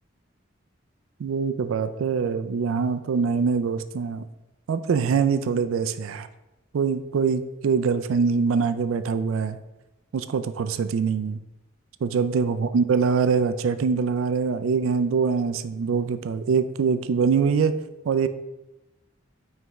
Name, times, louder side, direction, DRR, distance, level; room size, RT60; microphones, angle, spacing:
voice 1, 1.2-4.2 4.7-6.3 6.7-9.6 10.1-11.4 12.0-17.8 18.1-18.3, right 5 dB, 85° right, 12 dB, 0.4 m, -23 dB
9.0 x 3.4 x 3.1 m, 1.0 s
head